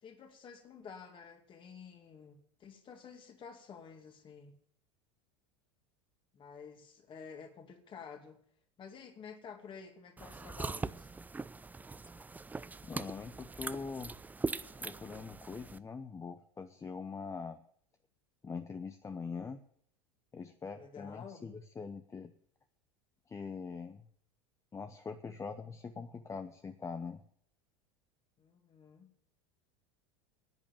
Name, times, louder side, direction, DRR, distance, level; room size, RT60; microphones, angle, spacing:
voice 1, 0.0-4.5 6.3-8.4 8.8-11.1 20.6-21.5 28.4-29.1, left 6 dB, 35° left, 5 dB, 2.4 m, -51 dB
sound 1, 10.2-15.8, right 3 dB, 10° right, 0.5 m, -41 dB
voice 2, 12.8-14.1 14.8-17.6 18.4-19.6 20.3-22.3 23.3-24.1 24.7-27.2, left 5 dB, 20° left, 9 dB, 0.9 m, -43 dB
10.5 x 8.7 x 7.4 m, 0.65 s
hypercardioid pair, 90°, 14 cm